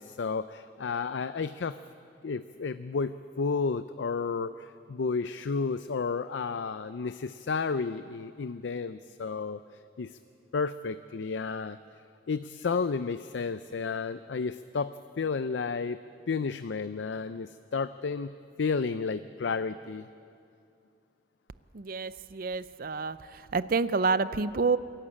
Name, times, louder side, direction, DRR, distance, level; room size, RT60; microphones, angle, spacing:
voice 1, 0.0-1.8 2.2-9.6 10.0-10.2 10.5-11.8 12.3-16.0 16.3-18.3 18.6-20.1, left 4 dB, 90° left, 12 dB, 0.5 m, -32 dB
voice 2, 21.7-23.2 23.5-24.8, right 4 dB, 55° right, 15 dB, 0.6 m, -28 dB
28.0 x 11.5 x 8.7 m, 2.5 s
head